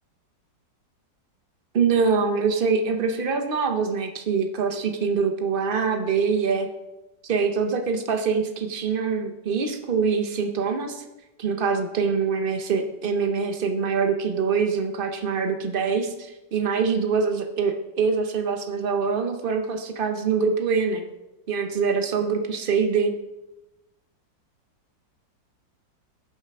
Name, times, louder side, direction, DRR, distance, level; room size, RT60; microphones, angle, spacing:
voice 1, 1.7-6.7 7.2-11.0 11.4-21.0 21.5-23.1, right 5 dB, 65° right, 6 dB, 0.5 m, -24 dB
9.0 x 5.8 x 5.9 m, 0.99 s
omnidirectional pair, 2.0 m